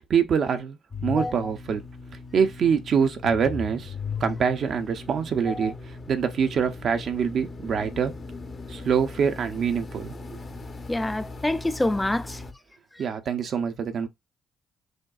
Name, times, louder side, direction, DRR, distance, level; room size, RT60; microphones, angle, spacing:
voice 1, 0.1-0.8 1.0-1.8 2.3-3.9 4.2-5.7 6.1-8.1 8.7-10.4 13.0-14.1, right 6 dB, 65° right, 0.6 m, -25 dB
sound 1, 0.9-12.5, left 4 dB, 45° left, 0.8 m, -38 dB
voice 2, 1.1-1.5 5.5-5.7 10.9-12.4, left 1 dB, 15° left, 0.3 m, -27 dB
6.3 x 2.2 x 2.4 m
hypercardioid pair, 50°, 0 cm